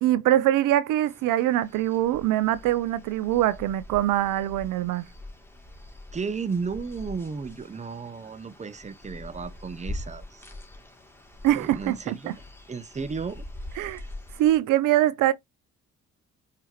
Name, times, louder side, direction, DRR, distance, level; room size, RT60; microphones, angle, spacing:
voice 1, 0.0-5.1 11.4-12.3 13.8-14.0 14.4-15.3, right 13 dB, 70° right, 0.5 m, -23 dB
sound 1, 1.0-14.6, left 1 dB, 5° left, 1.9 m, -43 dB
voice 2, 6.1-10.4 11.5-12.4 12.7-13.4, right 5 dB, 20° right, 0.7 m, -34 dB
4.7 x 2.8 x 3.2 m
hypercardioid pair, 50°, 33 cm